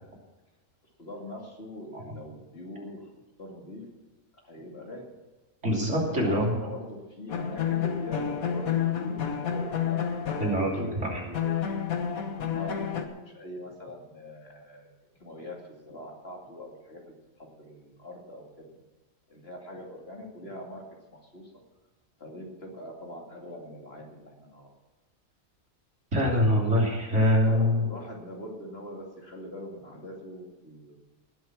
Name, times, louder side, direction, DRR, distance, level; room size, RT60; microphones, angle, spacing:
voice 1, 1.0-3.1 3.4-3.8 4.4-5.1 6.0-11.6 12.5-14.9 15.2-18.7 19.3-20.8 21.1-21.5 22.2-24.7 27.1-30.9, left 1 dB, 45° left, -1 dB, 2.9 m, -42 dB
voice 2, 5.6-6.6 10.4-11.2 26.1-27.9, equal, 55° right, -2 dB, 3.5 m, -24 dB
sound 1, 7.3-11.0 11.3-13.0, left 8 dB, 90° left, 1.7 m, -30 dB
19.0 x 8.0 x 6.1 m, 1.2 s
omnidirectional pair, 1.5 m